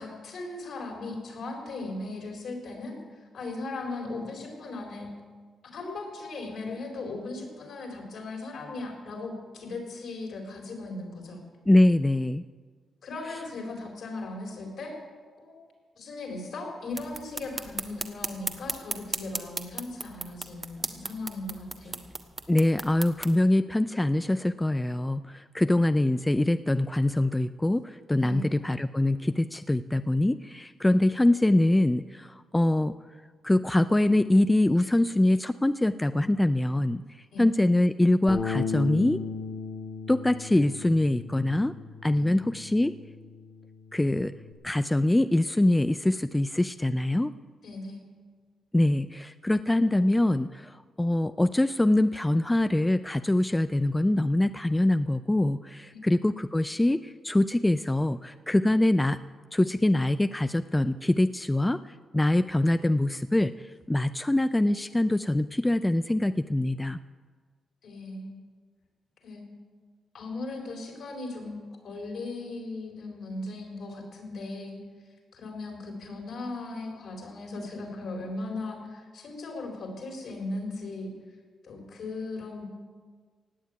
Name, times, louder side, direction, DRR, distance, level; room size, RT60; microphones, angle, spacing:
voice 1, 0.0-5.1 5.6-11.4 13.0-14.9 15.4-15.6 15.9-22.0 28.2-28.5 37.3-37.5 42.1-42.3 47.6-48.0 55.9-56.1 67.8-68.4 69.2-69.4 70.1-71.6 71.8-74.8 75.3-81.1 81.6-82.6, left 2 dB, 70° left, 1 dB, 4.5 m, -37 dB
voice 2, 11.7-12.4 22.5-32.9 33.4-37.0 37.4-39.2 40.1-41.7 42.0-42.9 43.9-44.3 44.6-47.3 48.7-59.2 59.5-61.8 62.1-63.5 63.9-67.0, left 1 dB, 15° left, 11 dB, 0.4 m, -24 dB
sound 1, 16.9-23.3, right 3 dB, 35° right, 1.4 m, -37 dB
Bass guitar, 38.3-44.5, left 5 dB, 40° left, 1.8 m, -37 dB
17.0 x 7.4 x 9.4 m, 1.5 s
cardioid pair, 70°, 0 cm